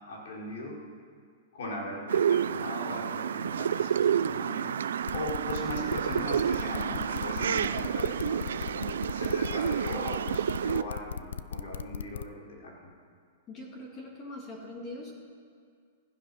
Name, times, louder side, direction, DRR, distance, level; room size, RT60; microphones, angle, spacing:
voice 1, 0.1-0.8 1.5-12.8, left 1 dB, 70° left, -3 dB, 5.0 m, -39 dB
sound 1, 2.1-10.8, right 8 dB, 90° right, 0.5 m, -29 dB
sound 2, 5.1-12.2, left 7 dB, 90° left, 0.5 m, -37 dB
voice 2, 13.5-15.1, left 1 dB, 20° left, 0 dB, 2.2 m, -42 dB
15.0 x 15.0 x 5.7 m, 2.1 s
hypercardioid pair, 160°, 0 cm